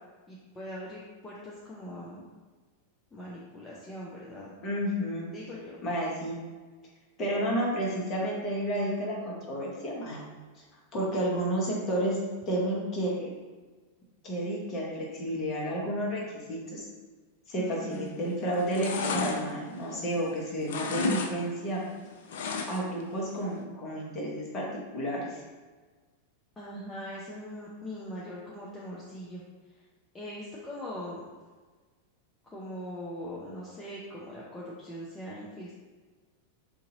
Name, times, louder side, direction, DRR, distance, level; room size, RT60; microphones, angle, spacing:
voice 1, 0.3-2.3 3.1-4.5 5.3-5.8 17.6-18.1 26.6-29.4 30.1-31.2 32.4-35.7, equal, 15° left, -6 dB, 0.6 m, -41 dB
voice 2, 4.6-5.3 5.8-6.4 7.2-10.3 10.9-12.2 12.5-13.3 14.2-16.9 17.5-21.8 22.6-24.7 24.9-25.4, right 1 dB, 30° left, -3 dB, 1.0 m, -31 dB
sound 1, 17.9-18.2 18.5-20.3 20.6-21.3 21.6-23.0 23.4-23.5, left 4 dB, 60° left, 0.4 m, -33 dB
2.8 x 2.6 x 3.8 m, 1.4 s
figure-of-eight pair, 90°, 0 cm